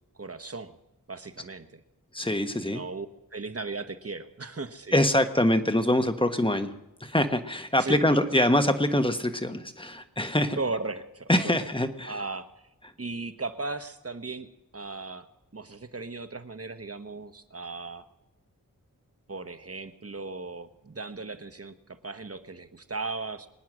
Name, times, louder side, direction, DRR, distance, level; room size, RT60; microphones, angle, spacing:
voice 1, 0.1-0.8 1.1-1.8 2.6-3.1 3.3-5.0 7.8-8.5 10.5-11.7 12.1-12.5 13.0-14.5 14.7-15.3 15.5-18.1 19.3-23.5, right 3 dB, 45° right, 9 dB, 1.2 m, -37 dB
voice 2, 2.1-2.8 4.9-10.6 11.3-12.2, left 1 dB, 15° left, 8 dB, 1.3 m, -24 dB
25.0 x 9.4 x 6.2 m, 0.90 s
wide cardioid pair, 60°, 34 cm